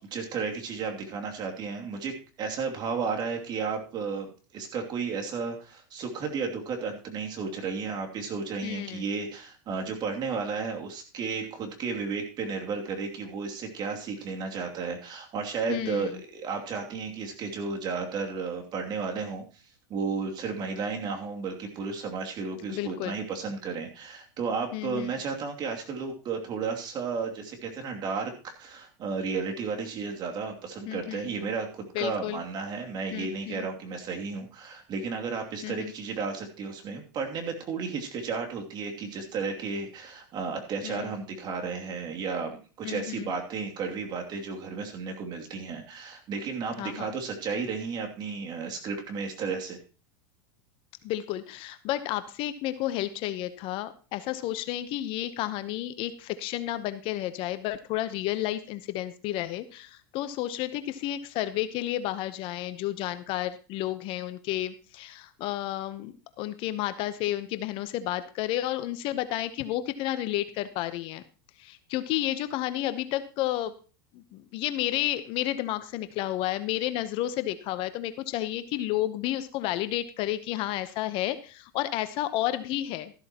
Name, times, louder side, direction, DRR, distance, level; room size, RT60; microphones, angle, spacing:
voice 1, 0.0-19.4 19.9-49.8, right 5 dB, 40° right, 2 dB, 2.7 m, -33 dB
voice 2, 8.6-9.0 15.7-16.1 22.7-23.2 24.7-25.1 30.9-31.3 31.9-32.4 33.1-33.7 35.6-35.9 40.8-41.1 42.8-43.3 46.8-47.1 51.0-71.2 71.6-73.7 74.1-83.1, left 14 dB, 50° left, 12 dB, 0.9 m, -31 dB
13.5 x 12.0 x 3.0 m, 0.36 s
hypercardioid pair, 105°, 12 cm